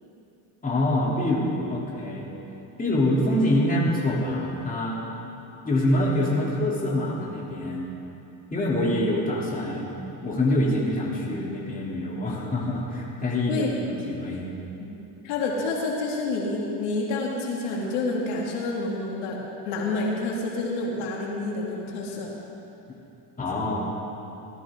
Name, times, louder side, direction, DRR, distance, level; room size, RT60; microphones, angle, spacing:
voice 1, 0.6-2.3 2.8-5.0 5.6-7.9 8.5-14.5 23.4-23.8, left 1 dB, 20° left, -5 dB, 3.1 m, -25 dB
voice 2, 15.2-19.4 19.7-22.3, left 3 dB, 85° left, -2 dB, 2.4 m, -28 dB
18.0 x 13.5 x 3.8 m, 3.0 s
cardioid pair, 110°, 40 cm